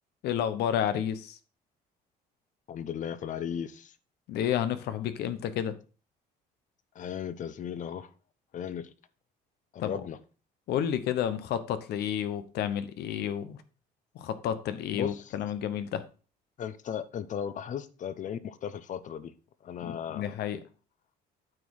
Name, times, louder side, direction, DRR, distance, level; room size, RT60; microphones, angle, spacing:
voice 1, 0.2-1.4 4.3-5.7 9.8-9.9 10.7-13.6 14.1-16.0 19.8-20.6, left 9 dB, 75° left, 0.9 m, -31 dB
voice 2, 2.7-4.0 6.9-8.1 8.5-8.9 9.7-10.2 14.9-15.4 16.6-19.3 19.6-20.3, left 8 dB, 50° left, 0.8 m, -36 dB
8.8 x 4.4 x 4.8 m
cardioid pair, 110°, 17 cm